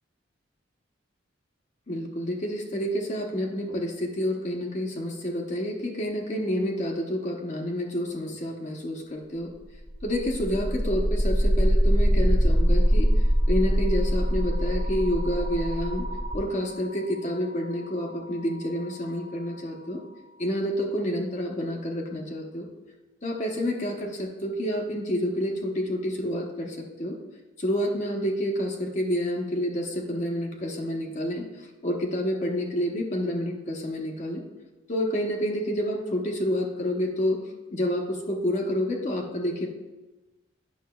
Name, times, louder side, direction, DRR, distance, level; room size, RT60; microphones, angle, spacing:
voice 1, 1.9-9.5 10.0-13.1 13.5-16.1 16.3-20.0 20.4-22.7 23.2-27.2 27.6-34.4 34.9-37.4 37.7-39.7, equal, 40° left, 0 dB, 0.8 m, -29 dB
sound 1, 9.8-19.7, equal, 35° right, 1.6 m, -25 dB
9.3 x 6.0 x 2.2 m, 1.1 s
head